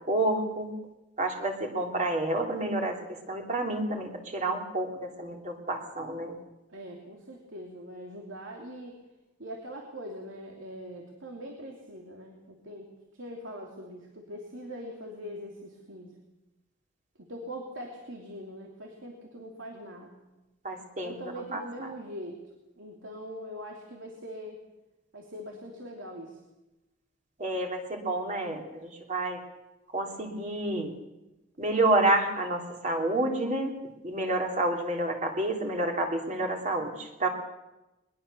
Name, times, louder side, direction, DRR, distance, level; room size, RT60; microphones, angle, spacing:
voice 1, 0.1-0.7 1.2-6.4 20.6-21.9 27.4-29.4 29.9-30.9 31.6-33.7 34.0-37.3, right 2 dB, 40° right, 2 dB, 3.3 m, -29 dB
voice 2, 6.7-9.0 9.4-16.1 17.2-20.1 21.0-22.4 22.8-24.6 25.1-26.4, equal, 80° right, 1 dB, 3.0 m, -42 dB
21.5 x 21.0 x 6.9 m, 0.99 s
head